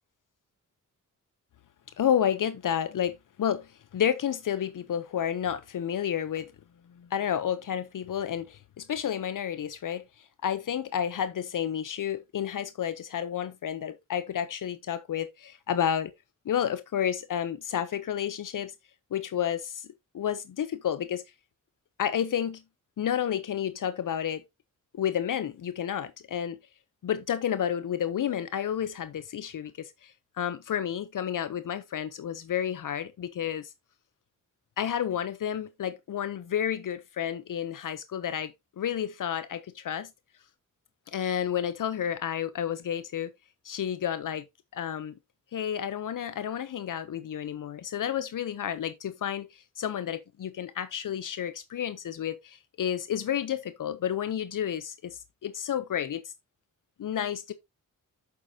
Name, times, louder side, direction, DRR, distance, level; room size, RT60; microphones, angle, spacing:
voice 1, 2.0-6.5 7.0-10.0 10.4-16.1 16.5-18.7 19.1-19.9 20.1-21.2 22.0-22.6 23.0-24.4 24.9-26.6 27.0-33.7 34.8-40.1 41.1-43.3 43.6-44.4 44.7-45.1 45.5-56.3 57.0-57.5, left 9 dB, 70° left, 0.7 m, -31 dB
8.4 x 7.0 x 2.8 m
cardioid pair, 85°, 33 cm